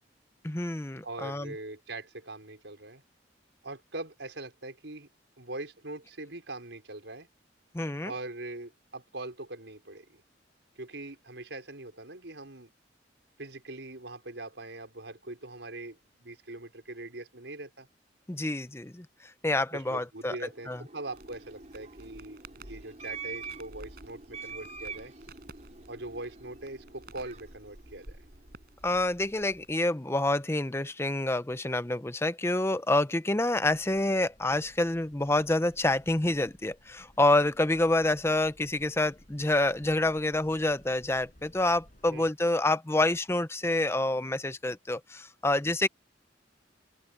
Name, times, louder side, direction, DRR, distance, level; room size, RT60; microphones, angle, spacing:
voice 1, 0.4-1.5 7.7-8.1 18.3-19.1 19.4-20.3 20.7-20.8 28.8-45.9, left 2 dB, 15° left, 0.7 m, -27 dB
voice 2, 1.0-3.0 3.6-5.1 5.4-7.3 8.0-10.2 10.8-12.7 13.4-17.9 19.7-25.1 25.9-28.3 42.1-42.3, right 2 dB, 80° right, 5.1 m, -42 dB
sound 1, 20.4-28.8, right 5 dB, 40° right, 6.2 m, -46 dB
Crackle, 21.1-29.8, right 2 dB, 55° right, 6.3 m, -52 dB
sound 2, 33.6-42.2, equal, 45° left, 5.8 m, -59 dB
open air
head